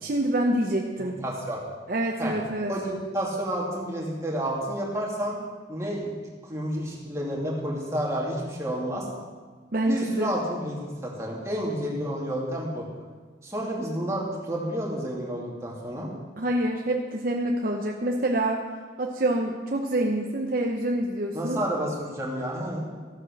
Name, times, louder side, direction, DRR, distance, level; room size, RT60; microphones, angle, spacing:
voice 1, 0.0-1.2 1.9-2.7 9.7-10.3 16.4-18.6 19.0-21.6, right 1 dB, 50° right, 1 dB, 0.8 m, -26 dB
voice 2, 1.0-1.6 2.2-2.3 2.7-5.3 5.7-6.2 6.5-9.0 9.9-12.9 13.4-16.1 21.3-22.9, right 1 dB, 15° right, -3 dB, 2.5 m, -30 dB
14.0 x 8.8 x 6.5 m, 1.5 s
head